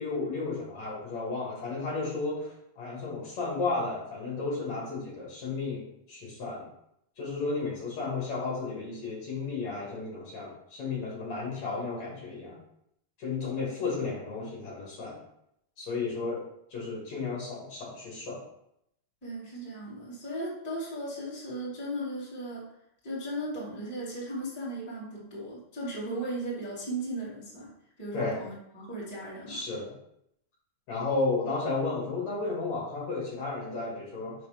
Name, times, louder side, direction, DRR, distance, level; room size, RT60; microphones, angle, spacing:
voice 1, 0.0-6.7 7.2-12.6 13.2-15.2 15.8-16.4 16.7-18.4 28.1-28.4 29.5-29.9 30.9-34.3, left 3 dB, 45° left, -5 dB, 2.9 m, -33 dB
voice 2, 19.2-22.7 23.0-27.7 28.0-29.6, right 1 dB, 10° left, -8 dB, 0.4 m, -36 dB
6.8 x 4.6 x 5.2 m, 0.78 s
omnidirectional pair, 5.6 m